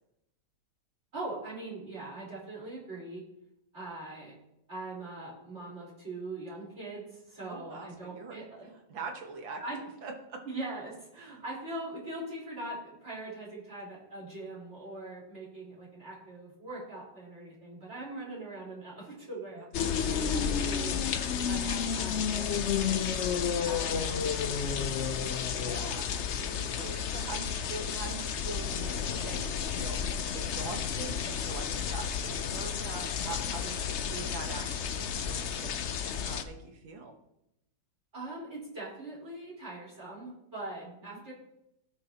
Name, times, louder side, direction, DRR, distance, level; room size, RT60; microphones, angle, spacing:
voice 1, 1.1-3.2 3.7-4.3 4.7-8.7 9.6-9.8 10.5-21.0 21.5-23.2 23.6-25.1 38.1-41.3, right 2 dB, 35° right, -7 dB, 4.5 m, -42 dB
voice 2, 7.4-8.4 8.7-9.6 10.0-10.4 11.2-11.4 19.5-20.5 25.6-37.1 40.8-41.2, right 4 dB, 85° right, 3 dB, 2.1 m, -43 dB
sound 1, 19.7-36.4, left 7 dB, 85° left, 0.6 m, -31 dB
17.0 x 6.1 x 2.9 m, 0.84 s
omnidirectional pair, 2.0 m